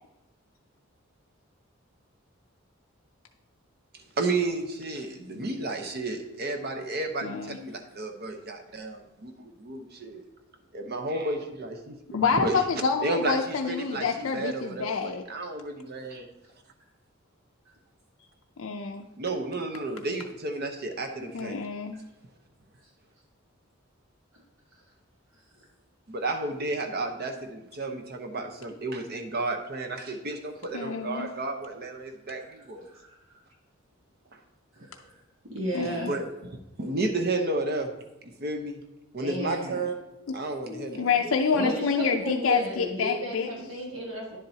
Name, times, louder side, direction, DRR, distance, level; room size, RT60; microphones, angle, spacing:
voice 1, 3.9-10.2 10.7-12.6 13.0-16.3 19.2-21.7 26.1-32.9 34.3-34.4 34.8-34.9 36.1-37.9 38.2-38.8 39.1-40.0 40.3-41.4, right 2 dB, 50° right, 5 dB, 0.9 m, -32 dB
voice 2, 7.2-7.6 12.1-15.2 18.6-19.1 21.3-22.0 30.7-31.3 35.7-36.1 40.7-43.5, left 5 dB, 70° left, 2 dB, 0.5 m, -27 dB
voice 3, 34.7-35.2 35.4-36.1 39.2-39.8 41.5-44.4, right 1 dB, 75° right, -2 dB, 1.4 m, -33 dB
10.5 x 7.4 x 2.8 m, 0.93 s
head